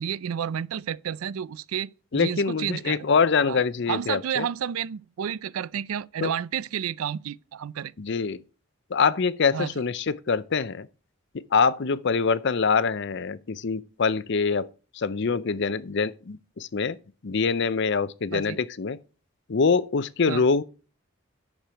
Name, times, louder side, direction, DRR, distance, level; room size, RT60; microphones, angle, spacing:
voice 1, 0.0-3.1 3.5-3.6 3.9-7.9 9.5-9.8 18.3-18.6 20.3-20.5, right 8 dB, 80° right, 0.4 m, -31 dB
voice 2, 2.1-4.5 6.2-6.3 8.0-8.4 8.9-10.9 11.5-14.7 15.0-17.0 17.2-19.0 19.5-20.6, left 5 dB, 55° left, 0.6 m, -24 dB
10.5 x 6.6 x 4.5 m
head